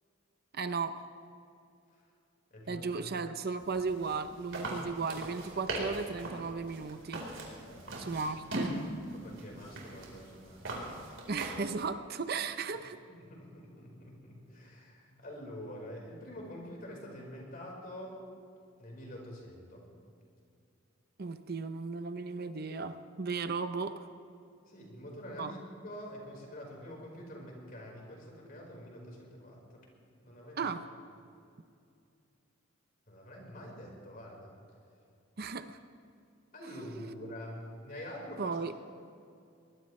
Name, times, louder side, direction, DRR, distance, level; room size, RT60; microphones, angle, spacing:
voice 1, 0.5-1.0 2.7-7.2 8.0-8.8 11.3-13.0 21.2-24.1 25.4-25.5 30.6-30.9 35.4-35.8 38.4-38.7, right 4 dB, 50° right, 10 dB, 0.7 m, -35 dB
voice 2, 2.5-2.9 7.6-8.1 9.1-10.9 13.1-18.2 18.8-19.8 24.7-29.8 30.2-30.7 33.1-34.5 36.5-38.6, equal, 45° left, -1 dB, 4.7 m, -46 dB
sound 1, 3.6-11.7, right 1 dB, 70° right, 4.2 m, -40 dB
22.5 x 19.5 x 3.2 m, 2.5 s
head